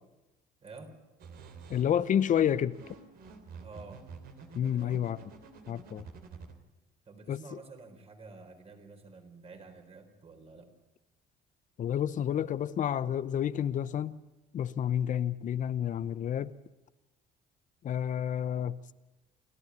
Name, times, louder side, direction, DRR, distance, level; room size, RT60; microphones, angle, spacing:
voice 1, 0.6-1.0 3.6-4.0 4.5-5.1 7.1-10.7, right 3 dB, 35° right, 4.1 m, -50 dB
sound 1, 1.2-6.5, right 5 dB, 65° right, 3.1 m, -49 dB
voice 2, 1.7-2.8 4.5-5.2 5.7-6.1 7.3-7.4 11.8-14.2 14.5-16.5 17.8-18.9, left 9 dB, 50° left, 0.8 m, -29 dB
29.0 x 12.5 x 9.6 m
cardioid pair, 110°, 17 cm